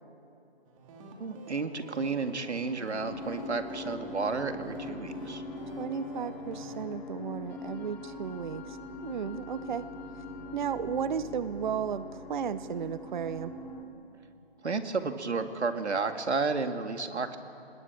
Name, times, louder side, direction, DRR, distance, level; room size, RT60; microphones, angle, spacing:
sound 1, 0.6-6.8, right 3 dB, 30° right, 2.8 m, -49 dB
voice 1, 1.2-5.4 14.6-17.4, right 4 dB, 85° right, 7 dB, 2.2 m, -32 dB
sound 2, 3.0-13.8, left 2 dB, 45° left, 2.7 m, -41 dB
voice 2, 5.8-8.8 9.0-9.9 10.5-13.5, right 7 dB, 45° right, 14 dB, 0.7 m, -34 dB
25.5 x 20.5 x 8.6 m, 2.9 s
hypercardioid pair, 155°, 33 cm